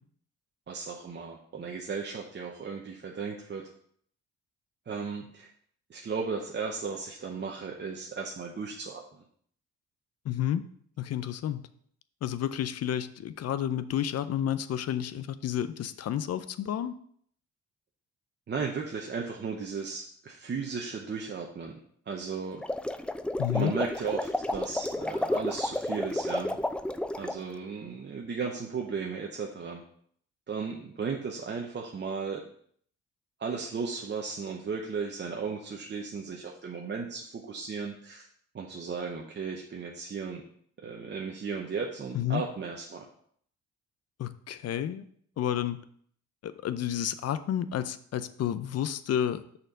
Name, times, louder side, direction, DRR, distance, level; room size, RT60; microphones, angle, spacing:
voice 1, 0.7-3.6 4.9-5.5 5.9-9.0 18.5-21.7 22.1-22.6 23.5-26.6 27.2-29.8 30.5-32.4 33.4-38.2 38.5-40.4 40.8-43.1, right 5 dB, 35° right, 0 dB, 0.9 m, -35 dB
voice 2, 10.3-10.6 11.0-11.7 12.2-16.9 23.4-23.7 42.1-42.4 44.2-45.0 45.4-45.8 46.4-49.4, left 10 dB, 55° left, 13 dB, 0.6 m, -30 dB
sound 1, 22.5-27.4, left 1 dB, 5° left, 0.3 m, -31 dB
6.3 x 4.4 x 5.2 m, 0.62 s
cardioid pair, 90°, 30 cm